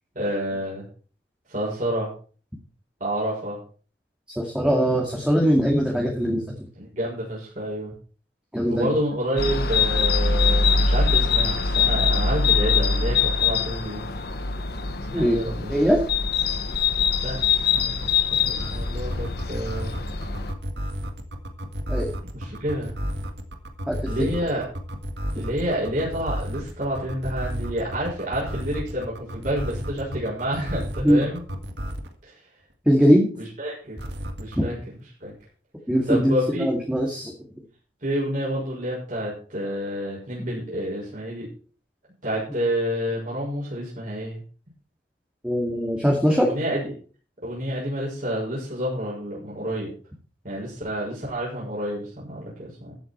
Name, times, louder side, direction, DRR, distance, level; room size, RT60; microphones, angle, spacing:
voice 1, 0.1-0.8 1.5-2.1 3.0-3.6 6.8-7.9 8.6-14.0 15.1-15.7 17.2-19.9 22.3-23.0 24.1-24.6 25.3-31.4 32.2-32.3 33.6-34.1 34.4-34.7 35.2-35.3 36.1-36.6 38.0-41.5 42.2-44.4 46.4-46.9 47.4-49.9 50.4-52.9, equal, 50° right, -6 dB, 6.6 m, -29 dB
voice 2, 4.4-6.7 8.5-8.9 15.1-15.4 15.7-16.1 21.9-22.1 23.9-24.3 31.0-31.2 32.9-33.3 34.6-34.7 35.9-37.3 45.4-46.5, equal, 5° right, -1 dB, 2.3 m, -21 dB
sound 1, 9.4-20.5, left 4 dB, 65° left, 1.5 m, -23 dB
sound 2, 17.8-32.2 34.0-34.6, equal, 80° right, 1.9 m, -32 dB
14.0 x 9.0 x 4.6 m, 0.40 s
head